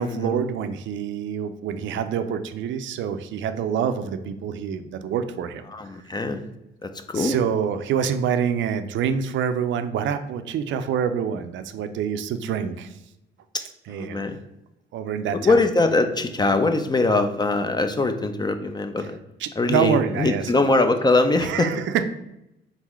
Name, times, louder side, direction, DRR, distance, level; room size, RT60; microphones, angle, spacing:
voice 1, 0.0-5.6 7.1-12.9 13.9-14.2 14.9-15.6 19.4-20.5 21.4-22.0, right 8 dB, 70° right, 9 dB, 0.4 m, -26 dB
voice 2, 5.7-6.4 6.8-7.4 13.5-13.6 13.9-14.4 15.3-19.2 19.6-21.7, left 3 dB, 20° left, 8 dB, 0.4 m, -22 dB
3.9 x 3.6 x 3.1 m, 0.88 s
cardioid pair, 90°, 20 cm